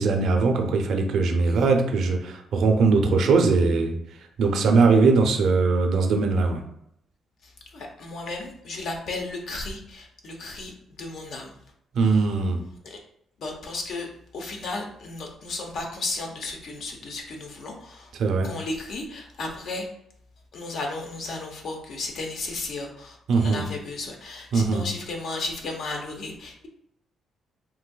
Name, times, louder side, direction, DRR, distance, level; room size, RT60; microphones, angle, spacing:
voice 1, 0.0-4.0 4.4-6.6 11.9-12.6 18.2-18.5 23.3-23.6 24.5-24.8, right 4 dB, 70° right, 4 dB, 0.5 m, -20 dB
voice 2, 7.4-11.5 12.0-12.2 12.8-13.0 13.4-18.1 18.4-19.9 20.5-26.7, left 3 dB, 65° left, 2 dB, 0.7 m, -34 dB
3.9 x 2.6 x 2.2 m, 0.74 s
cardioid pair, 90°, 0 cm